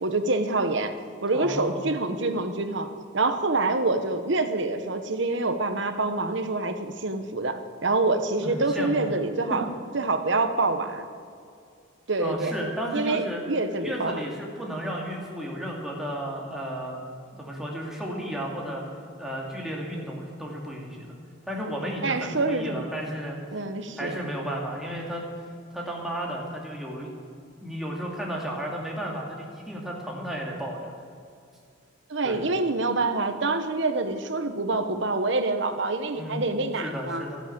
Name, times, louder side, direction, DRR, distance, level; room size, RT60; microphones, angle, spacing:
voice 1, 0.0-0.9 1.2-9.6 9.9-11.0 12.1-12.5 12.9-14.2 22.0-22.9 23.5-24.2 32.1-37.2, right 3 dB, 60° right, 8 dB, 1.1 m, -26 dB
voice 2, 1.3-1.8 8.4-9.1 9.5-9.6 12.2-13.4 13.8-17.0 17.4-18.8 19.2-21.1 21.5-23.4 24.0-25.2 25.7-27.2 27.6-30.8 32.2-32.4 36.2-36.5 36.8-37.4, equal, ahead, -3 dB, 2.5 m, -33 dB
13.0 x 11.5 x 8.7 m, 2.4 s
head